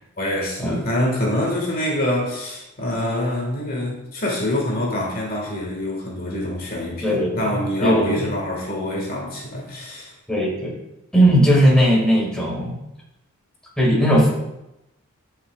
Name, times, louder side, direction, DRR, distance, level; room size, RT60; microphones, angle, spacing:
voice 1, 0.2-10.1, left 1 dB, 45° left, -2 dB, 1.8 m, -25 dB
voice 2, 7.0-8.3 10.3-10.7 11.1-12.7 13.8-14.3, equal, 5° left, -4 dB, 2.0 m, -18 dB
11.0 x 5.8 x 2.4 m, 0.91 s
head